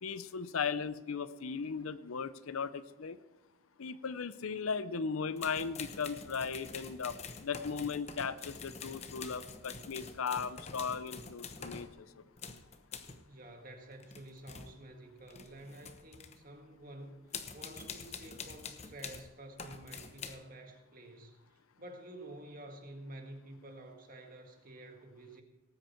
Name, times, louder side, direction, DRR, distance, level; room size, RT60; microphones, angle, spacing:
voice 1, 0.0-3.2 3.8-7.1 7.4-12.1, left 5 dB, 85° left, 15 dB, 0.6 m, -37 dB
sound 1, 5.4-12.0 12.4-13.3 13.9-14.8 15.2-16.4 17.3-19.3 19.6-20.3, left 5 dB, 30° left, 0.9 m, -46 dB
voice 2, 13.3-25.4, right 1 dB, 40° right, 4 dB, 1.8 m, -50 dB
18.5 x 9.2 x 4.4 m, 1.2 s
head